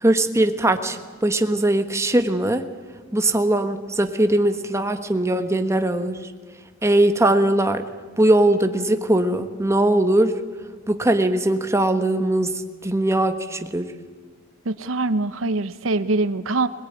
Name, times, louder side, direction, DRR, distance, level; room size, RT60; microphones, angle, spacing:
voice 1, 0.0-2.7 3.1-6.2 6.8-7.9 8.2-10.4 10.9-13.9, right 1 dB, 15° right, 7 dB, 1.4 m, -20 dB
voice 2, 14.7-16.7, right 2 dB, 85° right, 13 dB, 0.9 m, -23 dB
22.0 x 21.0 x 9.6 m, 1.4 s
head